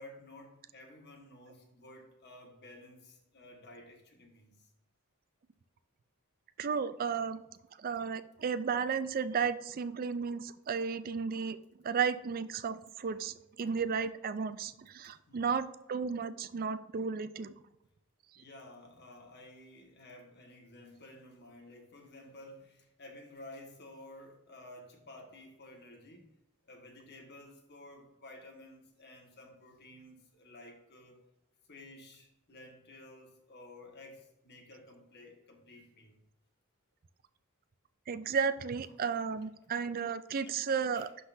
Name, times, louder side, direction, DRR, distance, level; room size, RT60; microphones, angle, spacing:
voice 1, 0.0-4.7 15.3-15.5 18.3-26.3 26.6-31.2 31.7-36.2 40.4-40.6 41.0-41.1, left 1 dB, 50° left, 1.5 m, -53 dB
voice 2, 6.6-7.4 7.8-11.6 11.8-17.5 38.1-41.1, right 6 dB, 45° right, 0.4 m, -33 dB
11.5 x 3.9 x 2.6 m
head